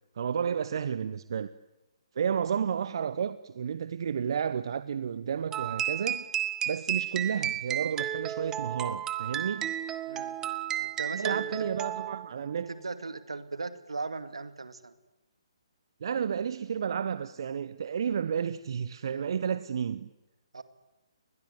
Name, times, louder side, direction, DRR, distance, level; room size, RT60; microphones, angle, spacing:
voice 1, 0.2-1.5 2.1-6.3 6.7-9.7 11.1-12.7 16.0-20.1, right 7 dB, 50° right, 0.9 m, -31 dB
sound 1, 5.5-12.3, right 11 dB, 15° right, 1.1 m, -33 dB
voice 2, 10.8-11.7 12.7-14.9 20.5-20.6, right 3 dB, 75° right, 2.2 m, -38 dB
30.0 x 21.0 x 8.1 m
figure-of-eight pair, 135°, 3 cm